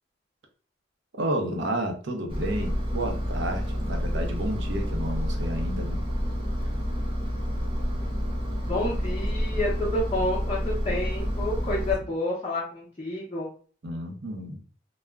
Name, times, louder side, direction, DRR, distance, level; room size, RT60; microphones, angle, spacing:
voice 1, 1.1-6.0 13.8-14.6, right 1 dB, 70° right, 3 dB, 0.6 m, -31 dB
Engine, 2.3-11.9, equal, 30° right, 0.6 m, -29 dB
voice 2, 8.6-13.5, left 1 dB, 30° left, -7 dB, 0.6 m, -29 dB
2.3 x 2.0 x 3.3 m, 0.41 s
head